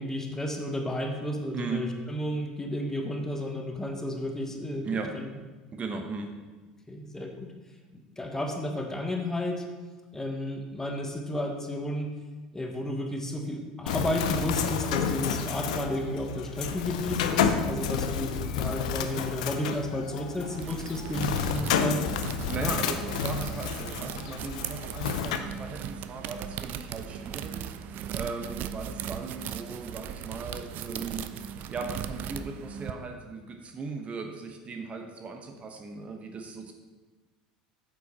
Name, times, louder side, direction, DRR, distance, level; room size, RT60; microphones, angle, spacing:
voice 1, 0.0-4.9 5.1-5.3 6.9-7.5 7.9-9.6 10.1-12.1 12.5-22.0, left 1 dB, 10° left, 3 dB, 1.1 m, -32 dB
voice 2, 1.5-1.9 4.8-5.1 5.7-6.3 22.5-27.7 28.1-31.2 31.7-36.7, right 4 dB, 35° right, 4 dB, 0.8 m, -37 dB
Bird, 13.9-25.4, left 7 dB, 70° left, 0.5 m, -30 dB
sound 1, 20.3-32.9, right 9 dB, 50° right, 0.4 m, -38 dB
8.0 x 5.1 x 4.1 m, 1.3 s
hypercardioid pair, 75°, 4 cm